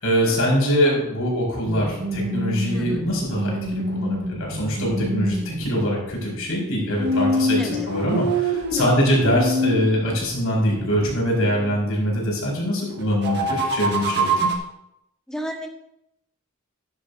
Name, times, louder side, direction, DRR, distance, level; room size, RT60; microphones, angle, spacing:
voice 1, 0.0-7.6 7.9-14.5, equal, 75° left, -2 dB, 5.0 m, -23 dB
sound 1, 1.6-5.9 7.0-11.8 13.0-14.6, right 1 dB, 55° right, 1.6 m, -26 dB
voice 2, 2.7-3.0 7.6-7.9 8.7-9.1 15.3-15.7, equal, 5° left, 1 dB, 1.5 m, -33 dB
14.0 x 10.5 x 2.7 m, 0.82 s
head